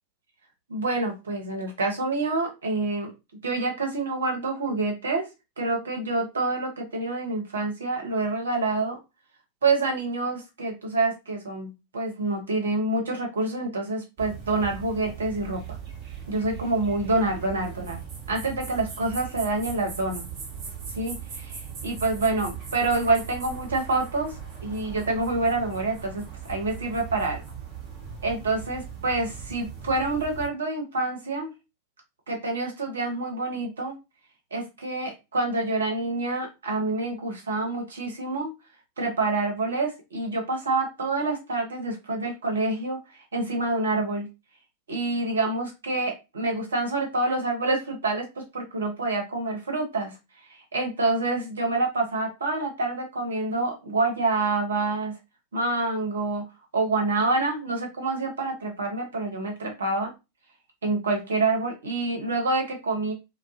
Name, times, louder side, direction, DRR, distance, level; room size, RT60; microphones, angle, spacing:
voice 1, 0.7-3.1 3.4-5.3 5.6-9.0 9.6-15.8 16.3-18.0 18.3-20.3 21.0-24.4 24.6-27.4 28.2-31.5 32.3-33.9 34.5-38.5 39.0-43.0 43.3-44.3 44.9-50.1 50.7-55.2 55.5-56.5 56.7-60.1 60.8-63.1, right 2 dB, 70° right, 1 dB, 0.8 m, -27 dB
sound 1, 14.2-30.5, right 7 dB, 35° right, 0.9 m, -39 dB
2.3 x 2.1 x 2.6 m, 0.25 s
figure-of-eight pair, 90°, 0 cm